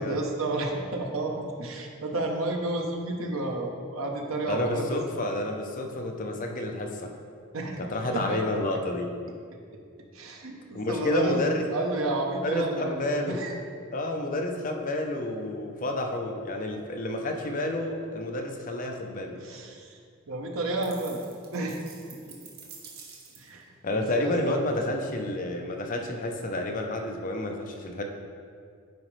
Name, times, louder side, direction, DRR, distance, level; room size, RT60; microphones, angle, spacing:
voice 1, 0.0-5.0 7.5-7.9 8.1-8.4 9.7-9.8 10.1-11.4 11.7-13.5 19.3-20.0 20.3-21.2 21.5-21.8 22.3-22.4 23.4-23.7 23.9-24.6, right 2 dB, 75° right, 2 dB, 0.9 m, -31 dB
voice 2, 4.5-7.1 7.8-9.1 10.7-11.6 12.4-13.4 13.9-19.4 23.8-28.0, left 1 dB, 40° left, 2 dB, 0.6 m, -30 dB
sound 1, 20.8-23.6, right 5 dB, 50° right, 0.9 m, -48 dB
9.3 x 5.0 x 3.2 m, 2.2 s
head